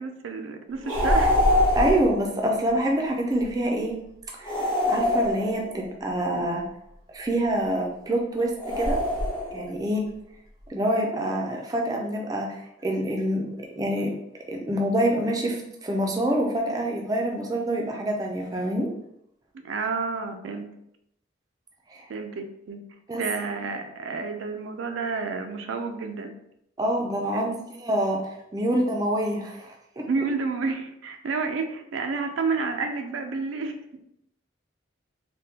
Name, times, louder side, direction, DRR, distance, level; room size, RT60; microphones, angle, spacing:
voice 1, 0.0-1.4 19.6-20.7 22.1-22.8 23.1-26.3 30.1-33.8, right 4 dB, 85° right, 6 dB, 0.4 m, -30 dB
sound 1, 0.8-2.2 4.4-5.9 8.6-9.7, left 1 dB, 25° left, 0.8 m, -23 dB
voice 2, 1.7-3.9 4.4-6.6 7.1-9.0 9.5-10.0 10.7-14.1 14.5-18.9 21.9-22.1 23.1-23.2 26.8-30.0, right 1 dB, 20° right, 0 dB, 0.4 m, -26 dB
3.4 x 2.1 x 2.8 m, 0.78 s
head